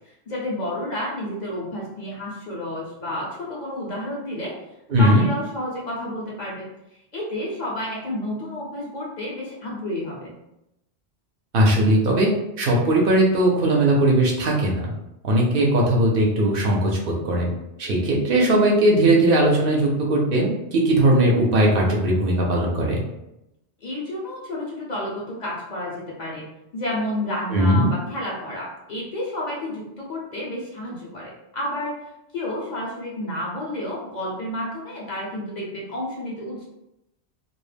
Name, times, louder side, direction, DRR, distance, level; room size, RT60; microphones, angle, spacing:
voice 1, 0.3-4.5 4.9-10.4 23.8-26.5 26.7-31.9 32.3-36.6, left 1 dB, 50° left, -4 dB, 0.6 m, -30 dB
voice 2, 4.9-5.2 11.5-12.3 12.6-14.9 15.2-17.5 17.8-23.0 27.5-27.9, right 1 dB, 65° right, -2 dB, 0.7 m, -19 dB
2.3 x 2.0 x 3.2 m, 0.88 s
omnidirectional pair, 1.1 m